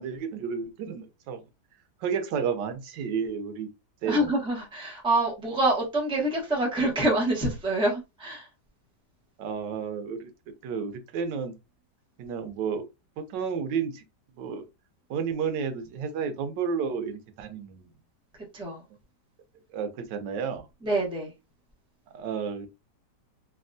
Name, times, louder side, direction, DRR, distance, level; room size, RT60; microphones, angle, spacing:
voice 1, 0.0-1.4 2.0-3.7 4.0-4.3 9.4-10.3 10.6-11.5 12.2-12.8 13.2-14.0 14.3-14.7 15.1-17.9 19.7-20.7 22.1-22.7, right 6 dB, 85° right, 1.3 m, -31 dB
voice 2, 4.1-8.5 18.4-18.8 20.8-21.3, right 1 dB, 5° right, 0.6 m, -26 dB
3.3 x 2.3 x 2.5 m
omnidirectional pair, 1.9 m